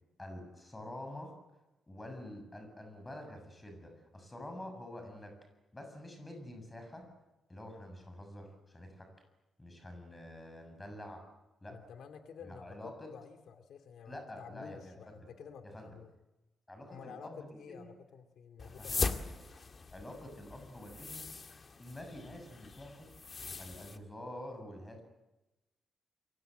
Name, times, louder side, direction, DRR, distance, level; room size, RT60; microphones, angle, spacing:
voice 1, 0.2-1.3 1.9-5.4 5.7-7.1 7.5-9.1 9.6-11.2 11.6-11.8 12.5-13.1 14.1-15.3 15.6-16.0 16.7-17.9 18.6-19.1 19.9-21.3 21.8-23.1 23.6-25.0, left 1 dB, 15° left, 5 dB, 7.3 m, -47 dB
voice 2, 11.7-16.1 16.9-19.2, left 7 dB, 75° left, 7 dB, 2.5 m, -51 dB
sound 1, 18.6-24.0, left 4 dB, 30° left, 1.9 m, -40 dB
29.5 x 23.5 x 7.9 m, 1.0 s
wide cardioid pair, 160°, 0 cm